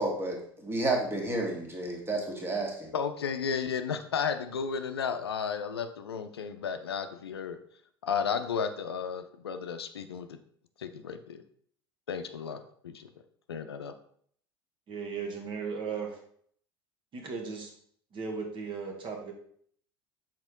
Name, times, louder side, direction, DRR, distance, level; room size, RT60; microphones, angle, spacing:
voice 1, 0.0-2.9, right 2 dB, 20° right, 0 dB, 1.7 m, -31 dB
voice 2, 2.9-7.6 8.0-10.4 10.8-11.4 12.1-13.1 13.5-13.9, left 6 dB, 80° left, 9 dB, 0.5 m, -33 dB
voice 3, 14.9-16.1 17.1-17.7 18.1-19.3, right 5 dB, 40° right, 2 dB, 1.5 m, -36 dB
6.0 x 4.4 x 3.7 m, 0.62 s
figure-of-eight pair, 70°, 13 cm